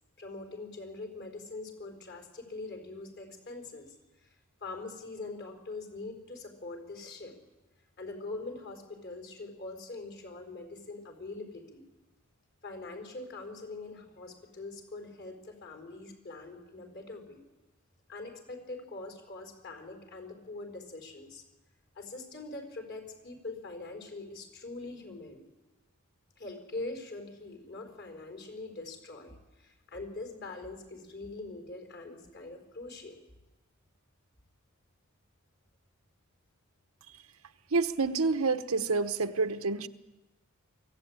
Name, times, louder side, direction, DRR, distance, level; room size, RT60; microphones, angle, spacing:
voice 1, 0.2-3.9 4.2-7.3 8.0-11.8 12.6-17.4 18.1-21.4 21.9-25.5 26.4-33.1, left 2 dB, 50° left, 4 dB, 4.7 m, -43 dB
voice 2, 37.7-39.9, right 4 dB, 80° right, 10 dB, 1.0 m, -28 dB
24.0 x 15.5 x 8.9 m, 1.1 s
head